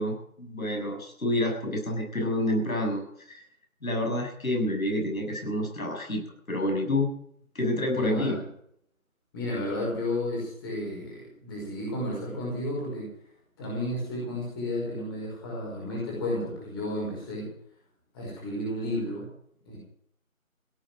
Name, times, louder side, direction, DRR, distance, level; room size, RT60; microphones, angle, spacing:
voice 1, 0.0-3.4 3.8-6.2 6.5-7.1 7.5-8.4, left 1 dB, 75° left, 2 dB, 6.8 m, -28 dB
voice 2, 7.9-8.4 9.3-13.1 13.6-17.5 18.1-19.3 19.7-19.8, left 1 dB, 15° left, -4 dB, 5.2 m, -32 dB
17.0 x 9.2 x 7.5 m, 0.65 s
figure-of-eight pair, 165°, 42 cm